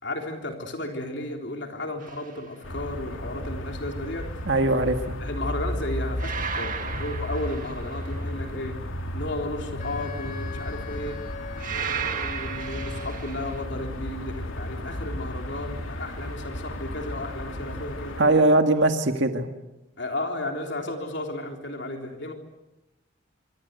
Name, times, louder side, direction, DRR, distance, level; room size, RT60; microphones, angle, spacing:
voice 1, 0.0-4.3 5.2-8.8 9.1-11.2 11.7-18.6 20.0-22.3, left 1 dB, 55° left, 3 dB, 3.6 m, -34 dB
sound 1, 2.0-2.4 6.2-8.3 11.6-13.6, right 7 dB, 40° right, 1.9 m, -34 dB
sound 2, 2.6-18.2, left 1 dB, 75° left, 2.8 m, -34 dB
voice 2, 4.5-5.1 18.2-19.5, right 2 dB, 60° right, 6 dB, 1.8 m, -21 dB
Wind instrument woodwind instrument, 9.8-13.4, left 6 dB, 35° left, 3.9 m, -42 dB
25.5 x 25.0 x 8.1 m, 0.97 s
head